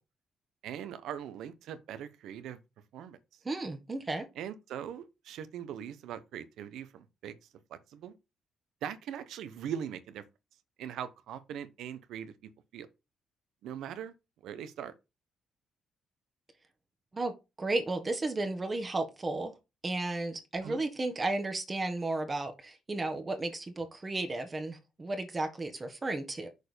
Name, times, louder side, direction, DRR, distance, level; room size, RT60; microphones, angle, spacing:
voice 1, 0.6-2.6 2.9-3.2 4.4-7.3 7.7-8.1 8.8-10.2 10.8-12.9 13.6-14.1 14.4-14.9 20.6-20.8, right 9 dB, 80° right, 0.9 m, -41 dB
voice 2, 3.4-4.3 17.1-19.5 19.8-26.5, right 2 dB, 25° right, 1.4 m, -33 dB
6.5 x 4.5 x 5.0 m
cardioid pair, 90°, 0 cm